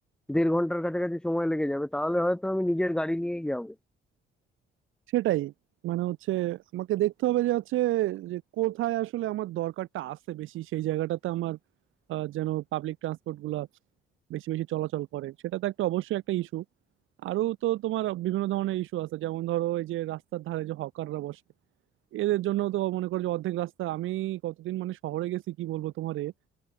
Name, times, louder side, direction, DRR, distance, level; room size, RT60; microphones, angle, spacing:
voice 1, 0.3-3.7, left 1 dB, 5° left, 1.4 m, -27 dB
voice 2, 5.1-5.5 5.8-11.6 12.1-13.7 14.3-16.6 17.2-21.4 22.1-26.3, right 15 dB, 85° right, 1.8 m, -30 dB
open air
cardioid pair, 90°, 20 cm